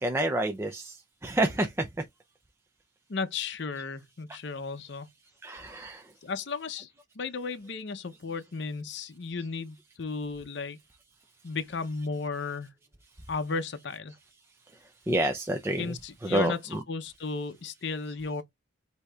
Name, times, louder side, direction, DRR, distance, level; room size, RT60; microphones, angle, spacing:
voice 1, 0.0-2.1 4.3-4.4 5.4-6.1 9.4-9.5 11.8-12.0 14.7-16.8 18.0-18.1, right 1 dB, 10° right, 0.4 m, -30 dB
voice 2, 3.1-5.1 6.2-10.8 11.4-12.7 13.3-14.2 15.8-18.4, left 4 dB, 60° left, 0.6 m, -34 dB
7.9 x 2.7 x 2.3 m
head